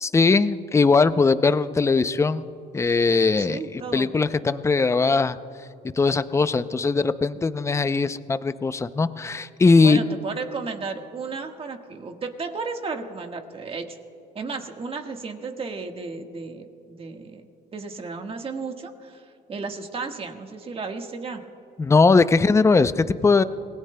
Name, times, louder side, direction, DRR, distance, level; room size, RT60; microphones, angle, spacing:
voice 1, 0.0-2.5 2.7-5.4 6.0-10.0 21.8-23.4, left 4 dB, 15° left, 13 dB, 0.5 m, -20 dB
voice 2, 3.4-4.1 9.7-14.0 14.3-17.4 17.7-19.2 19.5-21.4, right 4 dB, 35° right, 4 dB, 1.5 m, -34 dB
26.5 x 20.0 x 2.2 m, 2.6 s
cardioid pair, 110°, 17 cm